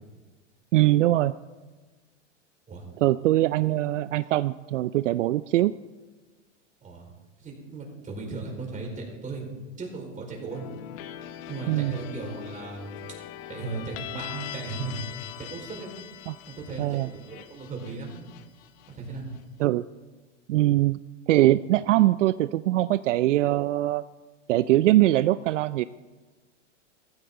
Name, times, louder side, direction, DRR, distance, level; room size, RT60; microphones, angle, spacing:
voice 1, 0.7-1.3 3.0-5.7 11.7-12.0 16.3-16.4 16.8-17.1 19.6-19.8 20.5-21.0 21.3-24.0 24.5-25.8, right 15 dB, 75° right, 15 dB, 0.5 m, -22 dB
voice 2, 7.4-10.6 11.5-13.2 13.5-15.0 15.4-15.9 16.5-18.3 18.9-19.3, right 3 dB, 20° right, 1 dB, 4.6 m, -37 dB
sound 1, 10.5-19.4, left 11 dB, 50° left, 1.1 m, -41 dB
15.5 x 15.0 x 3.8 m, 1.3 s
hypercardioid pair, 115°, 37 cm